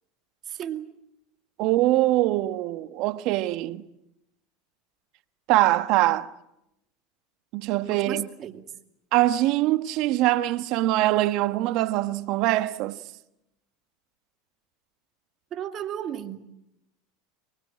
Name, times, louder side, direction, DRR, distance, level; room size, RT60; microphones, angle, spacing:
voice 1, 0.5-0.9 7.9-8.7 15.5-16.4, right 10 dB, 45° right, 2.4 m, -34 dB
voice 2, 1.6-3.8 5.5-6.3 7.5-8.3 9.1-13.0, right 16 dB, 60° right, 1.3 m, -23 dB
24.0 x 23.5 x 8.7 m
hypercardioid pair, 95°, 0 cm